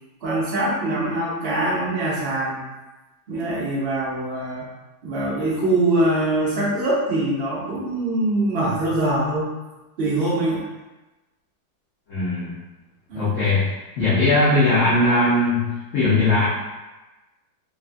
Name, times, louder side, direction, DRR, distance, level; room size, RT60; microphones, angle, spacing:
voice 1, 0.2-2.6 3.3-4.7 5.0-9.5 10.0-10.6 13.1-13.3 15.0-15.2, right 1 dB, 70° right, -6 dB, 0.5 m, -23 dB
voice 2, 12.1-12.5 13.1-13.7 14.0-16.5, left 2 dB, 80° left, -10 dB, 0.6 m, -19 dB
3.1 x 2.3 x 2.5 m, 1.1 s
omnidirectional pair, 2.1 m